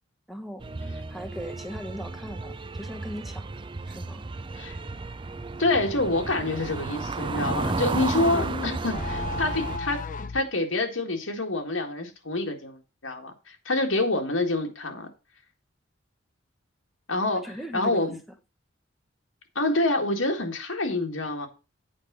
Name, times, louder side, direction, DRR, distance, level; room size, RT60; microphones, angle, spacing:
voice 1, 0.3-0.6 1.1-3.5 3.9-4.2 17.3-18.1, equal, ahead, 0.9 m, -38 dB
sound 1, 0.6-9.8, right 3 dB, 25° right, 0.4 m, -33 dB
voice 2, 5.6-10.0 10.3-15.1 17.1-17.4 17.7-18.2 19.6-21.5, left 2 dB, 85° left, 1.9 m, -27 dB
sound 2, 8.3-10.5, left 3 dB, 40° left, 0.6 m, -34 dB
8.7 x 4.9 x 6.1 m
head